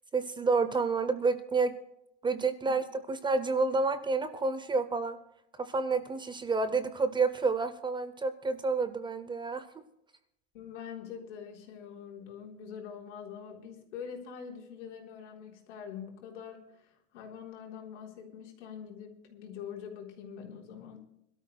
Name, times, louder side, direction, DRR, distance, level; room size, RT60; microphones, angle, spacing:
voice 1, 0.1-1.7 2.2-5.2 5.6-9.8, right 4 dB, 15° right, 11 dB, 0.6 m, -29 dB
voice 2, 10.5-21.0, left 7 dB, 85° left, 0 dB, 3.8 m, -44 dB
26.0 x 12.5 x 2.2 m, 0.80 s
supercardioid pair, 140°, 35 cm